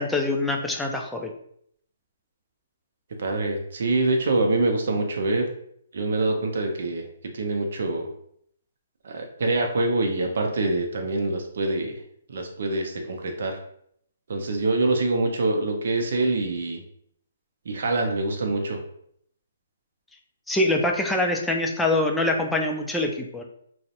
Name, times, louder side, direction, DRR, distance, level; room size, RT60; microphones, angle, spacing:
voice 1, 0.0-1.3 20.5-23.4, left 2 dB, 5° left, 1 dB, 0.3 m, -24 dB
voice 2, 3.2-5.5 5.9-7.0 7.3-8.1 9.0-11.9 12.3-13.6 14.3-16.8 17.7-18.8, right 2 dB, 65° right, 3 dB, 0.4 m, -25 dB
2.5 x 2.0 x 2.4 m, 0.68 s
hypercardioid pair, 135°, 0 cm